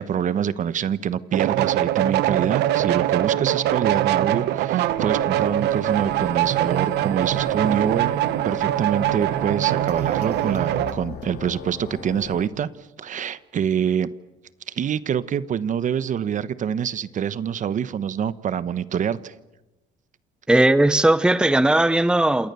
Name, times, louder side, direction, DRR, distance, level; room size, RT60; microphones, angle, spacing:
voice 1, 0.0-8.2 8.4-12.7 13.0-14.1 14.7-19.3, right 8 dB, 50° right, 15 dB, 1.2 m, -25 dB
sound 1, 1.3-11.0, right 13 dB, 80° right, 1.2 m, -23 dB
sound 2, 4.9-12.5, left 10 dB, 85° left, 2.2 m, -39 dB
voice 2, 20.5-22.5, right 1 dB, 5° right, 14 dB, 0.9 m, -18 dB
29.0 x 27.5 x 7.0 m, 1.0 s
cardioid pair, 110°, 17 cm